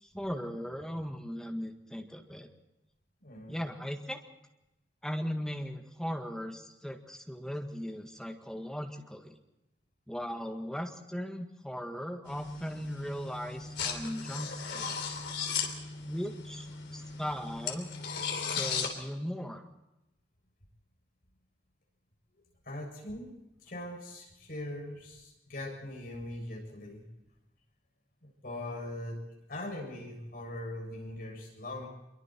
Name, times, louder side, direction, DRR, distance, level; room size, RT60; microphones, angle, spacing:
voice 1, 0.0-2.5 3.5-4.2 5.0-9.4 10.1-15.0 16.0-17.9 18.5-19.6, equal, 5° left, 3 dB, 1.9 m, -38 dB
voice 2, 3.2-3.6 22.6-23.3 23.6-27.0 28.2-29.2 29.5-31.9, left 1 dB, 55° left, 0 dB, 7.3 m, -41 dB
sound 1, 12.3-18.9, left 6 dB, 70° left, 3.4 m, -37 dB
26.0 x 23.0 x 4.6 m, 0.92 s
head